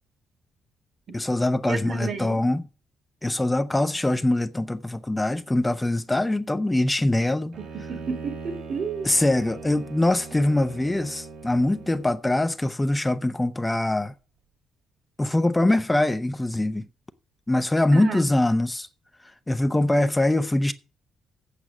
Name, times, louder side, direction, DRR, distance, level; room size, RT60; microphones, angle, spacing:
voice 1, 1.1-2.6 3.2-7.6 9.0-14.1 15.2-16.9 17.5-18.9 19.5-20.7, left 1 dB, 15° left, 0.6 m, -23 dB
voice 2, 1.7-2.4 7.9-9.1 17.9-18.3, right 5 dB, 55° right, 1.8 m, -31 dB
Bowed string instrument, 7.5-12.3, right 4 dB, 75° right, 2.3 m, -40 dB
8.3 x 7.4 x 6.0 m
cardioid pair, 90°, 0 cm